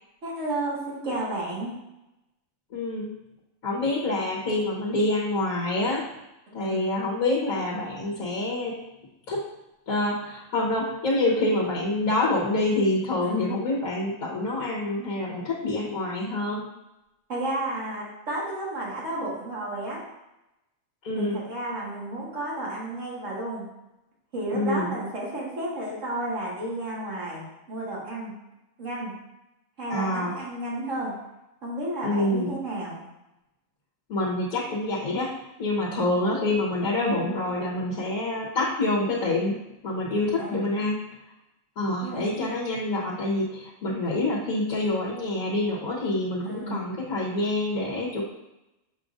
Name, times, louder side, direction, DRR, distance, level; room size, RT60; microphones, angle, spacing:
voice 1, 0.2-1.7 6.5-6.9 13.2-13.6 17.3-20.0 21.1-23.7 24.3-28.3 28.8-29.1 29.8-31.2 31.6-33.0 35.8-36.1 40.4-40.6 42.0-42.5 46.4-46.8, right 1 dB, 60° right, -5 dB, 2.2 m, -32 dB
voice 2, 2.7-3.1 3.6-6.0 6.5-8.8 9.3-9.4 9.9-16.6 21.0-21.4 24.5-24.9 29.9-30.3 32.0-32.6 34.1-35.3 35.6-39.6 39.8-41.0 41.8-48.2, left 2 dB, 85° left, -5 dB, 1.7 m, -26 dB
7.7 x 5.0 x 2.6 m, 0.93 s
omnidirectional pair, 1.4 m